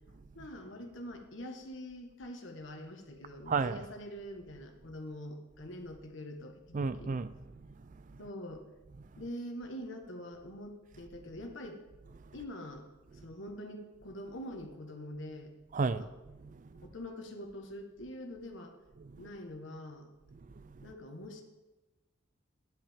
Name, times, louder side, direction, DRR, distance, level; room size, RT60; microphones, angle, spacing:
voice 1, 0.1-7.1 8.2-8.6 9.2-11.8 12.3-15.5 15.9-16.1 16.8-18.7 19.2-20.1 20.8-21.4, left 1 dB, 75° left, 1.5 m, -44 dB
voice 2, 3.5-3.9 6.7-7.7 8.0-8.3 9.0-9.3 12.1-12.4 13.1-13.2 15.7-16.9 19.0-19.2 20.3-20.9, right 4 dB, 40° right, 0.4 m, -36 dB
13.0 x 10.0 x 3.6 m
head